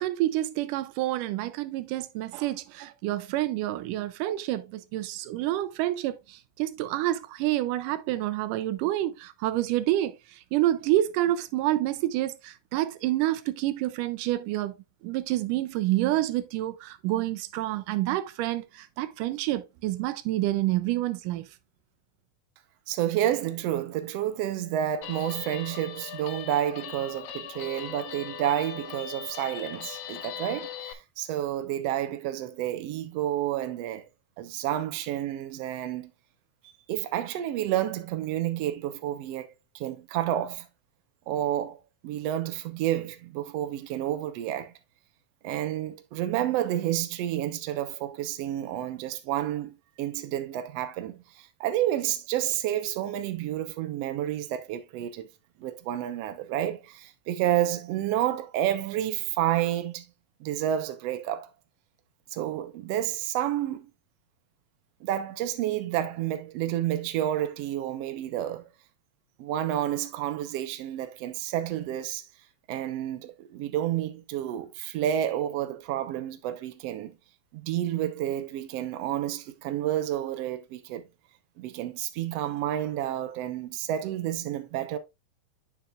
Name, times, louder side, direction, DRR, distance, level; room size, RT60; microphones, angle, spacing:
voice 1, 0.0-14.8 15.0-21.4, right 15 dB, 85° right, 2.2 m, -28 dB
voice 2, 22.9-34.0 34.4-36.1 36.9-40.7 41.3-44.7 45.4-55.3 55.6-60.1 60.4-61.5 62.3-63.9 65.0-68.6 69.4-72.2 72.7-77.2 77.5-81.0 81.6-85.0, right 12 dB, 70° right, 1.7 m, -30 dB
Guitar, 25.0-30.9, left 9 dB, 75° left, 2.2 m, -40 dB
9.8 x 6.0 x 2.4 m
omnidirectional pair, 3.7 m